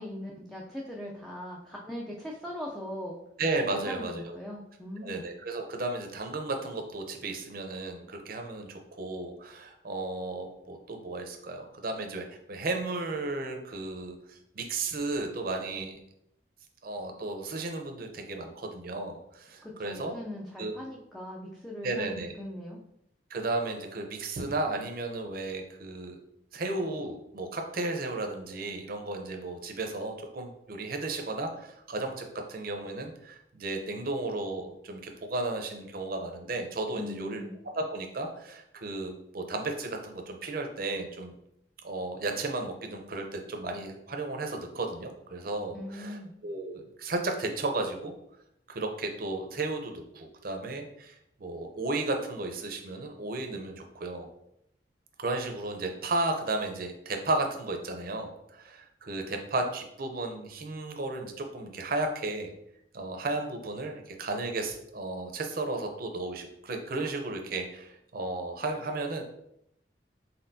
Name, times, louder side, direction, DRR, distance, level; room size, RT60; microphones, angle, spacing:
voice 1, 0.0-3.2 3.9-5.2 19.6-22.8 36.9-37.5 45.7-46.3, left 1 dB, ahead, -4 dB, 0.4 m, -40 dB
voice 2, 3.4-4.4 5.0-16.0 16.8-20.1 20.6-20.7 21.8-22.3 23.3-26.2 26.5-37.4 37.7-41.3 41.8-48.1 48.7-54.3 55.2-62.5 62.9-69.2, right 2 dB, 55° right, 4 dB, 0.7 m, -34 dB
4.3 x 3.8 x 2.7 m, 0.77 s
head